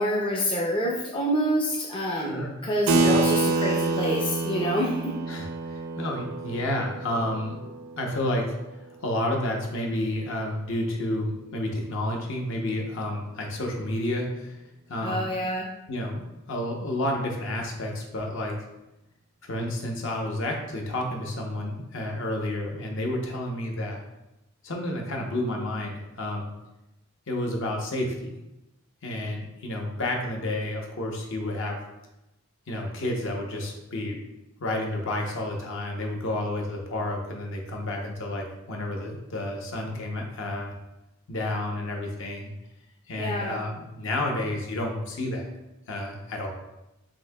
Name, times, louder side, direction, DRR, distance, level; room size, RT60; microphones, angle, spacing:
voice 1, 0.0-5.1 15.0-15.7 43.2-43.6, equal, 20° left, -3 dB, 0.4 m, -27 dB
voice 2, 2.1-2.6 3.0-3.1 5.3-8.5 9.0-14.6 14.9-15.3 15.9-18.6 19.4-24.0 24.6-26.5 27.3-28.4 29.0-31.8 32.7-34.2 34.6-40.8 41.3-42.5 43.1-45.5 45.9-46.5, left 1 dB, 55° left, 1 dB, 0.8 m, -30 dB
Keyboard (musical), 2.9-8.9, right 3 dB, 60° right, 0.4 m, -27 dB
7.1 x 2.6 x 2.2 m, 0.94 s
head